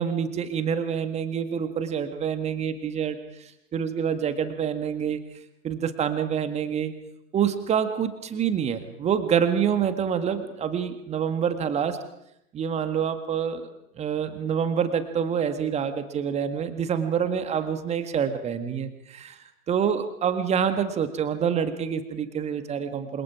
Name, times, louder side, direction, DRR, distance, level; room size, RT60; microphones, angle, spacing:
voice 1, 0.0-3.2 3.7-5.2 5.6-6.9 7.3-12.0 12.5-13.7 14.0-19.4 19.7-23.2, right 8 dB, 15° right, 9 dB, 1.8 m, -26 dB
27.5 x 26.5 x 4.9 m, 0.79 s
figure-of-eight pair, 120°, 46 cm